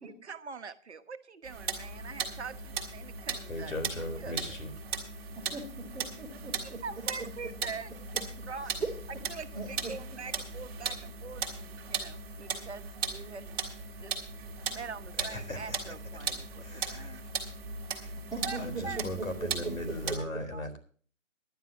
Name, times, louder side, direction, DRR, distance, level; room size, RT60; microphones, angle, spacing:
voice 1, 0.0-4.6 6.6-8.7 9.3-13.6 14.0-14.2 14.7-17.2 18.4-19.0 20.2-20.3 20.5-20.6, right 5 dB, 55° right, 9 dB, 1.3 m, -44 dB
sound 1, 1.4-20.2, right 5 dB, 15° right, 1.8 m, -38 dB
voice 2, 3.5-4.7 15.2-15.8 16.6-17.2 18.6-20.8, left 1 dB, 80° left, 7 dB, 4.3 m, -38 dB
voice 3, 5.3-6.8 8.6-8.9 9.5-9.9 18.3-18.6 18.9-19.0 19.4-19.7, right 3 dB, ahead, -10 dB, 0.8 m, -39 dB
19.5 x 11.0 x 2.9 m, 0.44 s
figure-of-eight pair, 155°, 40 cm